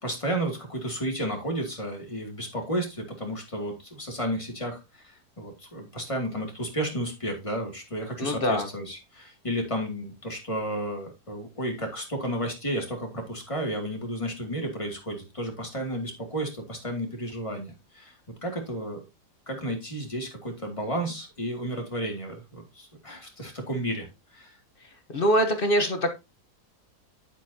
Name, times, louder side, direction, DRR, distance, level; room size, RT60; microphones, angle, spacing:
voice 1, 0.0-18.2 18.4-19.0 19.5-24.1 24.3-24.6, right 1 dB, 20° left, 1 dB, 2.5 m, -32 dB
voice 2, 8.2-8.7 25.1-26.1, equal, 35° left, 6 dB, 1.2 m, -23 dB
9.5 x 8.1 x 2.8 m, 0.26 s
omnidirectional pair, 1.8 m